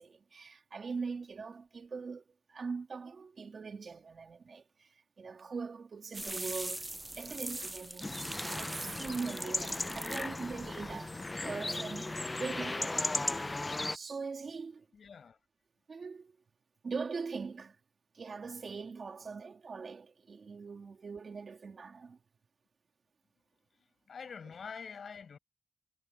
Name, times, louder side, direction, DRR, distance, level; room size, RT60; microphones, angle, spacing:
voice 1, 0.0-8.1 8.5-11.2 11.4-13.1 13.9-14.9 15.9-16.4 16.8-17.8 18.1-22.2, right 5 dB, 70° right, 2.8 m, -42 dB
sound 1, 6.1-11.3, right 1 dB, 20° right, 0.5 m, -42 dB
sound 2, 8.0-14.0, left 2 dB, 30° left, 0.5 m, -36 dB
voice 2, 14.9-15.4 24.1-25.4, left 6 dB, 85° left, 5.7 m, -45 dB
wide cardioid pair, 75°, 0 cm